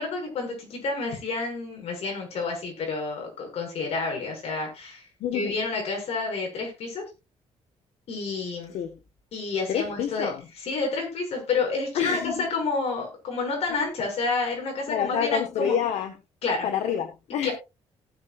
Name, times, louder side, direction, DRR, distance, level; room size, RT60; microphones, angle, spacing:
voice 1, 0.0-5.0 5.3-7.0 8.1-8.7 9.3-10.3 10.7-15.7 16.4-16.7 17.4-17.5, left 4 dB, 65° left, 7.0 m, -29 dB
voice 2, 5.2-5.6 8.7-9.0 9.7-10.4 11.9-12.4 14.9-16.2 16.6-17.5, left 8 dB, 85° left, 1.5 m, -28 dB
18.5 x 7.9 x 2.6 m
cardioid pair, 130°, 11 cm